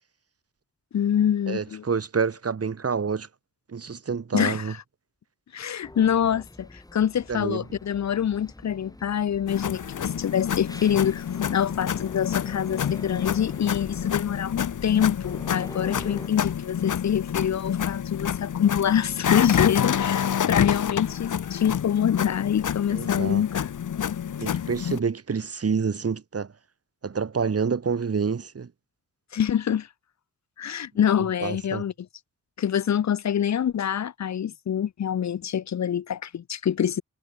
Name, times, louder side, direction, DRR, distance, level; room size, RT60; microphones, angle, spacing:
voice 1, 0.9-1.8 4.3-4.8 5.5-11.2 11.5-23.7 24.6-24.7 29.3-29.9 30.6-31.9 32.6-37.0, left 9 dB, 65° left, 0.6 m, -25 dB
voice 2, 1.5-3.3 3.7-4.7 7.3-7.6 22.9-23.4 24.4-26.5 27.0-28.7 31.4-31.8, right 5 dB, 50° right, 2.5 m, -28 dB
sound 1, 5.8-16.3, left 1 dB, 10° left, 2.8 m, -44 dB
sound 2, 9.5-25.0, left 8 dB, 80° left, 1.1 m, -28 dB
wide cardioid pair, 155°, 31 cm